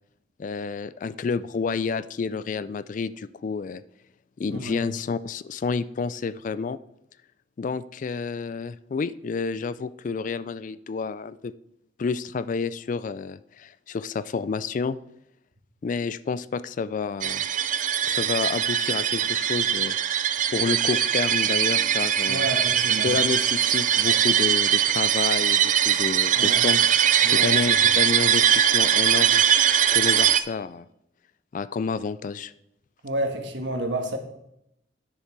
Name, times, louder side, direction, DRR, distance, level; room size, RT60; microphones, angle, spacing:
voice 1, 0.4-3.8 4.4-6.8 7.6-11.5 12.0-15.0 15.8-17.4 18.1-19.9 20.5-22.5 23.0-26.8 27.3-29.4 29.9-30.9 31.5-32.5, left 5 dB, 40° left, 16 dB, 0.3 m, -29 dB
voice 2, 4.5-4.8 22.3-23.1 26.4-26.6 27.2-27.5 33.0-34.2, right 1 dB, 65° right, 5 dB, 1.5 m, -30 dB
sound 1, 17.2-30.4, right 9 dB, 40° right, 0.4 m, -21 dB
10.0 x 6.7 x 4.6 m, 0.79 s
head